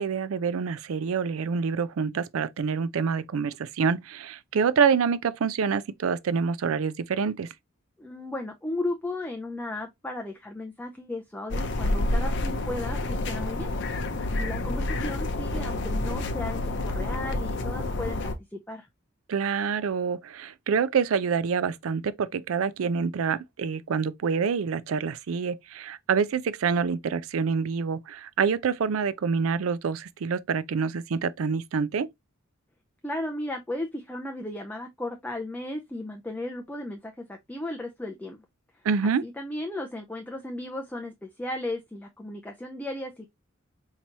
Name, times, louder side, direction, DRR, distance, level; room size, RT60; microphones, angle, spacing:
voice 1, 0.0-7.5 19.3-32.1 38.8-39.2, right 6 dB, 80° right, 0.4 m, -27 dB
voice 2, 8.0-13.7 14.2-18.9 33.0-38.4 39.2-43.3, left 1 dB, 5° left, 0.4 m, -35 dB
sound 1, 11.5-18.3, left 2 dB, 60° left, 0.6 m, -29 dB
4.6 x 2.8 x 2.8 m
head